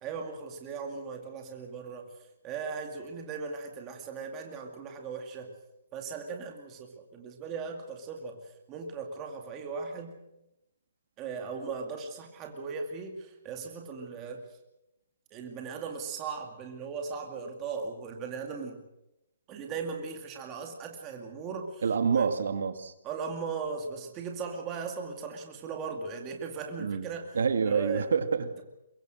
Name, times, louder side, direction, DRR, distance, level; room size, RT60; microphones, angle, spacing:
voice 1, 0.0-2.1 2.4-5.5 5.9-10.2 11.2-14.4 15.3-18.8 19.5-22.3 23.0-28.1, right 5 dB, 15° right, 3 dB, 2.2 m, -38 dB
voice 2, 21.8-22.9 26.8-27.1 27.3-28.4, right 6 dB, 80° right, 9 dB, 2.1 m, -27 dB
23.0 x 22.5 x 6.4 m, 0.88 s
hypercardioid pair, 175°, 0 cm